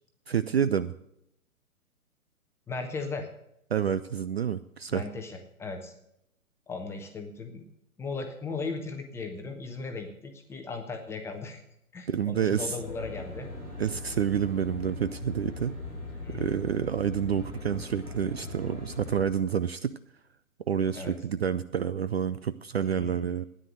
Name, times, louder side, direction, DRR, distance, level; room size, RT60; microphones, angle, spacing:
voice 1, 0.3-0.9 3.7-5.0 12.1-12.8 13.8-15.7 16.3-19.9 20.7-23.4, right 8 dB, 45° right, 14 dB, 0.5 m, -28 dB
voice 2, 2.7-3.3 4.9-5.9 6.7-7.6 8.0-11.6 11.9-13.5 16.2-16.5 20.9-21.2 22.9-23.4, left 4 dB, 5° left, 4 dB, 1.0 m, -37 dB
Aircraft, 12.5-19.2, left 2 dB, 85° right, 4.2 m, -40 dB
13.5 x 9.9 x 6.4 m, 0.77 s
figure-of-eight pair, 120°, 43 cm